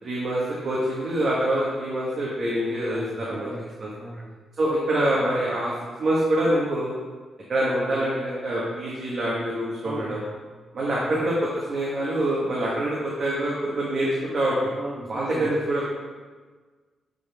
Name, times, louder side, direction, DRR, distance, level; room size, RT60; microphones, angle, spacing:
voice 1, 0.0-3.5 3.8-3.9 4.6-5.7 6.0-6.9 7.5-10.2 10.7-14.1 14.3-14.7 15.1-15.9, right 1 dB, 45° right, -6 dB, 1.4 m, -25 dB
voice 2, 2.9-4.5 9.8-10.3 11.0-11.2 14.7-15.6, right 1 dB, 20° right, 1 dB, 0.9 m, -38 dB
9.2 x 4.0 x 3.5 m, 1.4 s
cardioid pair, 120°, 0 cm